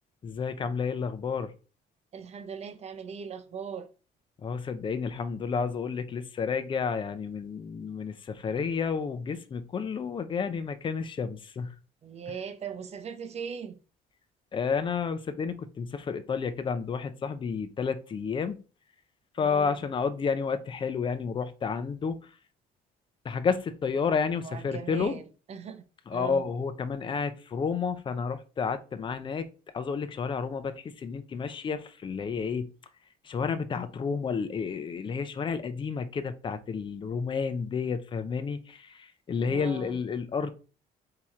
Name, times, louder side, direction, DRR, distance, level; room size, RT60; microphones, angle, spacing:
voice 1, 0.2-1.5 4.4-11.7 14.5-18.6 19.3-22.2 23.2-25.2 26.1-29.5 29.7-32.7 33.2-40.5, left 5 dB, 30° left, 0.5 m, -31 dB
voice 2, 2.1-3.9 12.0-13.8 19.4-19.7 24.4-25.2 25.5-25.8 26.1-26.4 39.5-40.0, right 7 dB, 40° right, 0.6 m, -39 dB
4.3 x 2.9 x 3.6 m
cardioid pair, 110°, 17 cm